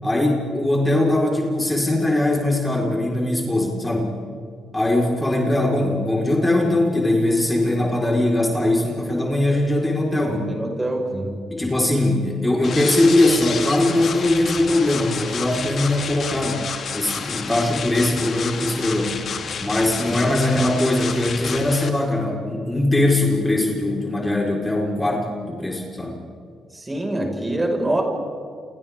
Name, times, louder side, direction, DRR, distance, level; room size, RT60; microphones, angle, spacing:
voice 1, 0.0-4.2 4.7-10.5 11.5-19.2 19.6-26.2, left 1 dB, 15° left, -2 dB, 4.7 m, -21 dB
voice 2, 10.5-11.4 20.1-20.3 26.7-28.0, right 1 dB, 20° right, 1 dB, 5.6 m, -25 dB
sound 1, 12.6-21.9, left 6 dB, 55° left, 2.7 m, -30 dB
29.5 x 28.0 x 3.8 m, 2.3 s
supercardioid pair, 65°, 0 cm